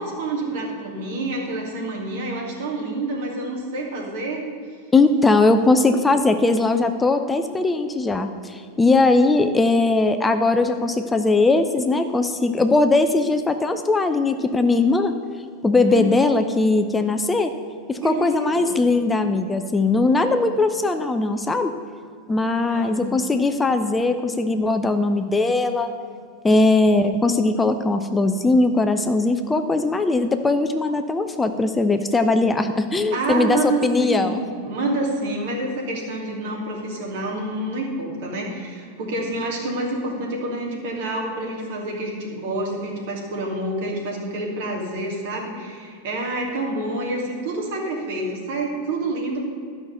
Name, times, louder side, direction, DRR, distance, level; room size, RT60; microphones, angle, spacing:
voice 1, 0.0-4.4 15.9-16.1 18.0-18.7 22.7-23.2 33.1-49.4, right 2 dB, 65° right, -1 dB, 2.8 m, -28 dB
voice 2, 4.9-15.1 15.6-17.5 17.9-21.7 22.3-25.9 26.4-34.4, left 3 dB, 15° left, 7 dB, 0.6 m, -20 dB
12.0 x 5.9 x 6.7 m, 2.3 s
hypercardioid pair, 95°, 0 cm